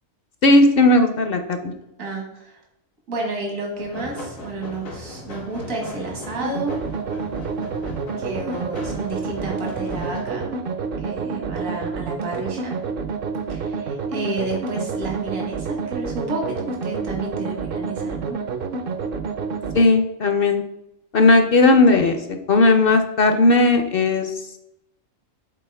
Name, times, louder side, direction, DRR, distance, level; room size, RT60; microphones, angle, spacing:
voice 1, 0.4-1.7 19.7-20.6 21.1-22.2 22.5-24.3, left 2 dB, 55° left, 7 dB, 0.7 m, -16 dB
voice 2, 2.0-2.6 3.1-6.8 8.2-10.5 11.0-12.7 13.5-18.4, right 2 dB, 80° right, 0 dB, 1.9 m, -31 dB
sound 1, 3.8-10.5, left 1 dB, 80° left, 1.7 m, -37 dB
sound 2, 6.4-19.8, right 5 dB, 55° right, 0.7 m, -28 dB
7.5 x 4.1 x 3.3 m, 0.84 s
omnidirectional pair, 1.4 m